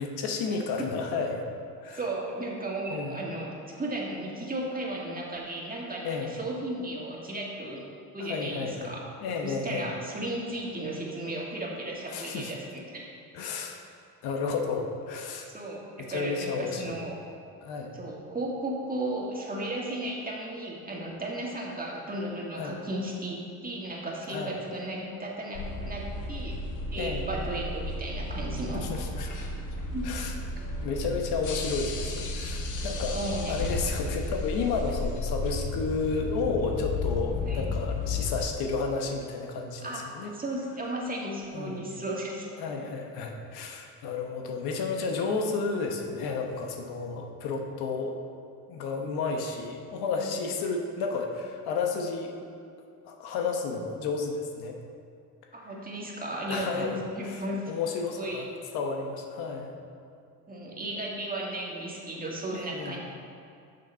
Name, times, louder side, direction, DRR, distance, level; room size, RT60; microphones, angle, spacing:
voice 1, 0.0-1.4 1.8-2.0 2.9-3.2 6.0-6.4 8.2-9.9 12.1-12.5 13.3-13.8 14.2-15.5 16.0-16.9 17.6-18.0 22.5-22.8 24.3-24.5 27.0-27.3 28.7-29.3 30.0-30.3 30.8-33.2 33.5-40.3 41.5-41.9 42.6-48.2 48.7-52.3 53.1-54.8 56.5-57.0 57.3-57.4 57.7-59.7 62.5-63.0, left 4 dB, 85° left, 3 dB, 1.0 m, -32 dB
voice 2, 1.9-7.9 8.1-9.0 9.4-13.0 15.5-17.2 17.9-26.6 26.9-28.9 29.9-30.1 33.1-33.7 37.5-37.7 39.8-40.0 40.3-42.5 50.2-50.5 55.5-57.6 58.2-58.4 60.5-63.0, right 1 dB, 25° right, -3 dB, 1.9 m, -35 dB
sound 1, 25.5-38.5, left 2 dB, 55° left, 1.1 m, -33 dB
6.6 x 6.5 x 5.5 m, 2.4 s
cardioid pair, 90°, 37 cm